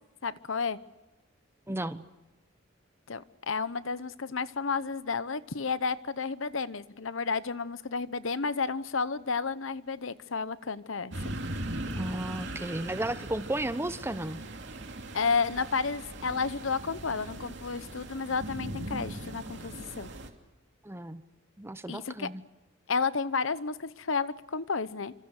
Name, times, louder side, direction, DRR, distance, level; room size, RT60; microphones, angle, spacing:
voice 1, 0.2-0.8 3.1-11.3 15.1-20.1 21.9-22.3 22.9-25.1, left 4 dB, 70° left, 15 dB, 0.9 m, -31 dB
voice 2, 1.7-2.1 12.0-14.4 20.8-21.2 21.6-22.4, right 1 dB, 10° right, 12 dB, 1.0 m, -34 dB
sound 1, 11.1-20.3, right 1 dB, 60° right, 2.8 m, -39 dB
27.5 x 26.0 x 6.6 m, 1.1 s
head